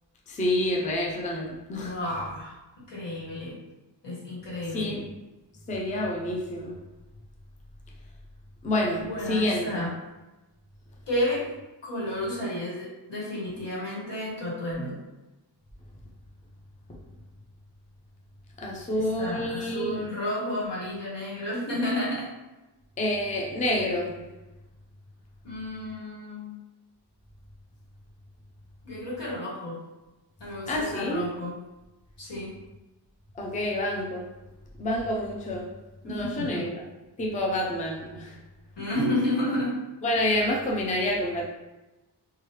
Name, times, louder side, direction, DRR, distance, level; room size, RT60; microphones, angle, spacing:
voice 1, 0.3-1.9 4.7-5.0 5.7-6.8 8.6-9.9 18.6-20.0 23.0-24.2 30.7-31.2 33.4-34.3 34.8-35.7 36.0-36.8 37.2-38.4 40.0-41.4, left 1 dB, 20° left, -1 dB, 0.4 m, -28 dB
voice 2, 1.8-2.5 2.9-3.6 4.0-5.0 9.0-9.9 11.1-11.5 11.8-15.0 18.9-22.3 25.4-26.6 28.8-29.8 30.4-31.5 32.2-32.5 36.1-36.6 38.8-39.8, left 1 dB, 85° left, -6 dB, 1.3 m, -31 dB
3.0 x 2.3 x 3.0 m, 1.0 s
wide cardioid pair, 135°, 41 cm